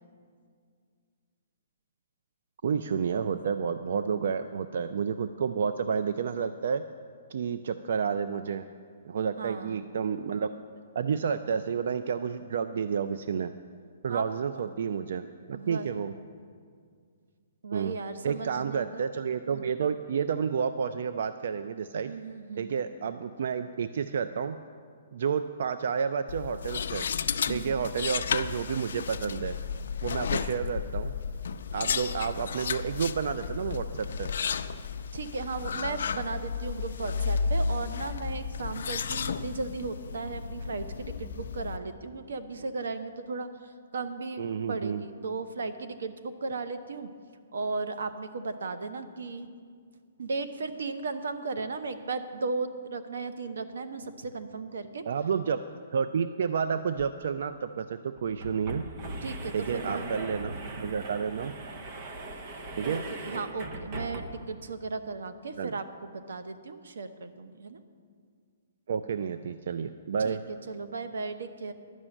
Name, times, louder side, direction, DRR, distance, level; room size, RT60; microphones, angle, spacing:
voice 1, 2.6-6.8 7.3-8.7 9.0-10.5 11.0-13.5 14.0-16.1 17.7-18.0 18.2-22.1 22.6-24.6 25.1-27.1 27.5-29.6 30.0-31.1 31.7-34.3 44.4-45.0 55.1-55.6 55.9-58.8 59.5-61.5 62.8-63.0 65.6-65.8 68.9-70.4, right 6 dB, 55° right, 11 dB, 0.3 m, -30 dB
voice 2, 9.4-9.9 14.1-14.3 15.5-15.9 17.6-19.0 19.5-19.7 22.1-22.7 27.5-27.8 35.1-44.4 44.7-47.1 47.5-49.5 50.2-55.0 59.2-60.1 62.8-62.9 63.3-67.8 70.2-70.4 70.7-71.7, right 4 dB, 85° right, 10 dB, 0.8 m, -36 dB
sound 1, 26.3-41.8, left 6 dB, 65° left, 0.4 m, -33 dB
sound 2, 57.0-57.1 57.4-57.5 58.2-64.6, right 2 dB, 25° right, 0.7 m, -39 dB
11.0 x 6.1 x 8.9 m, 2.1 s
hypercardioid pair, 175°, 0 cm